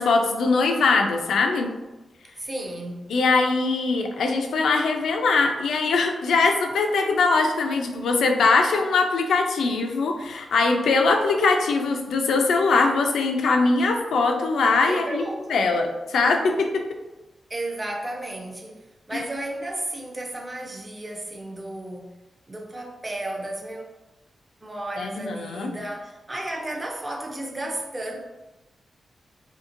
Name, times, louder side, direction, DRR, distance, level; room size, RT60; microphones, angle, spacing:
voice 1, 0.0-1.7 3.1-15.2 15.5-16.7 19.1-19.2 25.0-25.7, left 3 dB, 90° left, 3 dB, 0.4 m, -21 dB
voice 2, 2.4-3.1 14.9-15.6 17.5-22.1 22.5-23.8 24.6-28.2, right 1 dB, 25° right, 1 dB, 0.5 m, -33 dB
2.8 x 2.7 x 2.5 m, 1.1 s
cardioid pair, 85°, 0 cm